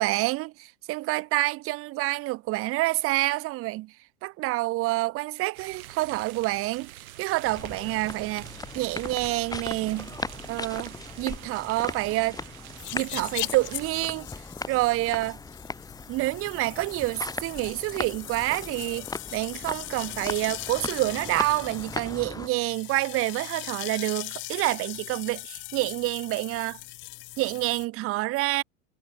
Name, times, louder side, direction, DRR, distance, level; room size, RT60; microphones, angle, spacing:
voice 1, 0.0-3.9 4.2-6.9 7.2-8.5 8.7-10.1 10.5-12.4 12.9-14.3 14.7-15.4 16.1-26.8 27.4-28.6, right 20 dB, 35° right, 0.5 m, -28 dB
sound 1, 5.5-13.9, right 13 dB, 85° right, 1.0 m, -46 dB
sound 2, 7.4-22.5, left 3 dB, 10° left, 1.9 m, -38 dB
sound 3, 12.8-27.9, left 21 dB, 30° left, 0.4 m, -39 dB
hypercardioid pair, 95°, 41 cm